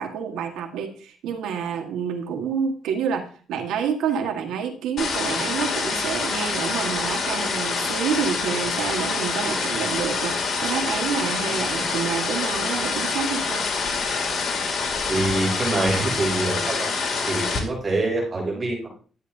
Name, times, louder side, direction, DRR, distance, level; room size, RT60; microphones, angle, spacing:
voice 1, 0.0-13.6, right 7 dB, 90° right, 4 dB, 1.6 m, -28 dB
sound 1, 5.0-17.6, left 4 dB, 50° left, 2.5 m, -26 dB
voice 2, 15.1-16.9 17.2-18.9, right 2 dB, 35° right, -2 dB, 6.0 m, -25 dB
13.0 x 8.3 x 2.7 m, 0.41 s
cardioid pair, 90°, 0 cm